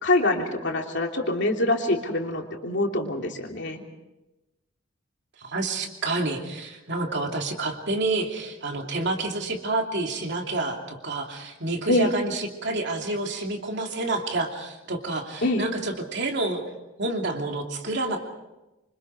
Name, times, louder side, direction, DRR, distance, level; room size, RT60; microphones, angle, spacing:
voice 1, 0.0-3.8 11.9-12.1 15.4-15.6, left 2 dB, 55° left, 2 dB, 3.0 m, -25 dB
voice 2, 5.4-16.6 17.0-18.2, right 2 dB, 55° right, 2 dB, 2.9 m, -29 dB
26.5 x 25.0 x 4.8 m, 1.0 s
head